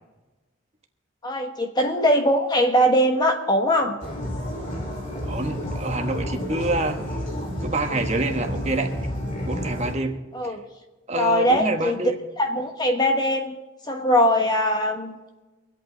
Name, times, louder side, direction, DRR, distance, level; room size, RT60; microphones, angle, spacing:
voice 1, 1.2-4.0 10.3-10.6 11.2-12.0 12.4-13.5 13.9-15.1, equal, 20° left, 4 dB, 1.1 m, -21 dB
sound 1, 4.0-9.9, equal, 40° left, 3.0 m, -30 dB
voice 2, 5.2-7.2 7.6-8.9 9.4-10.1 10.4-10.5 11.1-12.2, right 2 dB, 30° right, 4 dB, 1.4 m, -27 dB
25.0 x 8.4 x 4.0 m, 1.1 s
head